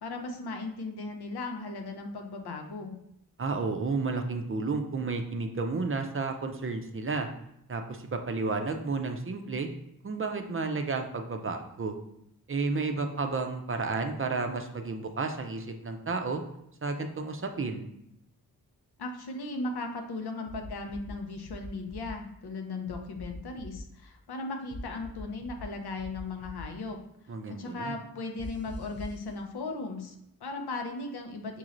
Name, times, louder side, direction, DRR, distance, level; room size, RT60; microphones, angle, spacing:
voice 1, 0.0-3.0 19.0-27.0 27.5-31.6, left 3 dB, 85° left, 4 dB, 0.7 m, -37 dB
voice 2, 3.4-7.3 7.7-9.7 10.0-11.9 12.5-16.4 16.8-17.9 27.3-28.0, right 4 dB, 35° right, 5 dB, 0.5 m, -32 dB
sound 1, 20.5-21.1 21.5-22.1 22.9-23.8 24.7-25.7 26.0-26.6 28.4-29.2, left 2 dB, 30° left, 0.5 m, -42 dB
5.4 x 3.0 x 2.5 m, 0.78 s
wide cardioid pair, 75°, 38 cm